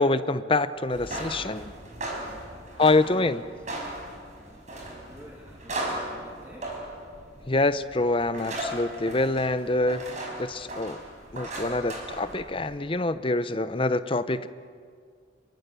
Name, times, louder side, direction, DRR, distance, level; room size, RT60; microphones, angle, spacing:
voice 1, 0.0-1.7 2.8-3.4 7.5-10.0 10.4-11.0 11.3-14.5, left 2 dB, 30° left, 13 dB, 0.7 m, -25 dB
sound 1, 0.8-12.7, right 1 dB, 40° right, 5.5 m, -37 dB
voice 2, 2.0-3.4 4.0-7.1, equal, 15° right, -3 dB, 2.9 m, -51 dB
28.5 x 24.0 x 6.9 m, 2.1 s
head